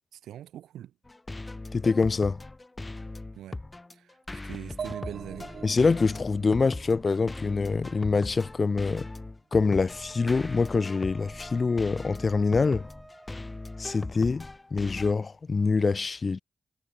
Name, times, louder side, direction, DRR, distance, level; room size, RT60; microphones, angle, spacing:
voice 1, 0.1-0.9 3.3-3.6 3.9-5.5, right 11 dB, 85° right, 1.8 m, -42 dB
sound 1, 1.1-15.1, left 2 dB, 30° left, 2.6 m, -39 dB
voice 2, 1.7-2.4 5.6-9.1 9.5-12.9 13.8-16.4, left 4 dB, 50° left, 0.4 m, -25 dB
sound 2, 4.8-8.5, right 6 dB, 65° right, 0.9 m, -43 dB
Wind instrument woodwind instrument, 9.9-14.3, right 1 dB, 20° right, 2.8 m, -50 dB
supercardioid pair, 40°, 0 cm